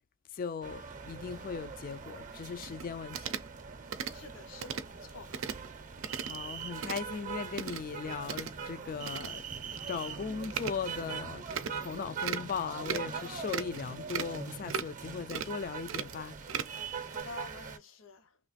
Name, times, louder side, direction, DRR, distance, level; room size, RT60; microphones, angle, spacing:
voice 1, 0.3-3.3 6.2-9.4 9.9-16.4, left 6 dB, 45° left, 0.3 m, -38 dB
sound 1, 0.6-17.8, right 5 dB, 40° right, 0.6 m, -42 dB
sound 2, 2.6-2.8 3.1-3.5 3.9-4.1 4.6-4.8 5.3-5.7 6.0-6.4 6.6-7.0 7.5-7.8 8.2-8.5 9.0-9.3 9.7-9.8 10.4-10.7 11.5-11.7 12.2-12.5 12.8-13.2 13.5-13.8 14.1-14.4 14.7-15.0 15.3-15.5 15.9-16.8 17.1-17.2, right 7 dB, 85° right, 0.5 m, -36 dB
voice 2, 4.1-5.4 17.1-18.4, left 3 dB, 75° left, 0.7 m, -48 dB
3.1 x 2.4 x 4.0 m
head